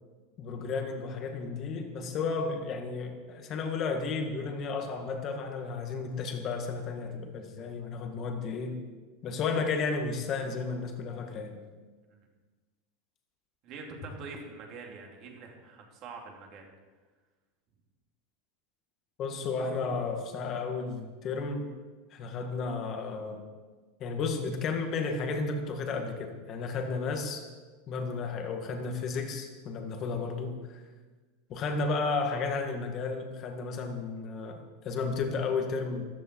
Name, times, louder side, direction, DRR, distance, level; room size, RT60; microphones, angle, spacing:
voice 1, 0.4-8.8 9.2-11.6 19.2-21.7 22.1-23.4 24.0-27.4 27.9-30.8 31.5-36.1, left 4 dB, 25° left, 4 dB, 1.8 m, -33 dB
voice 2, 13.6-16.7, right 4 dB, 35° right, 1 dB, 2.6 m, -45 dB
14.0 x 14.0 x 4.6 m, 1.3 s
supercardioid pair, 170°, 0 cm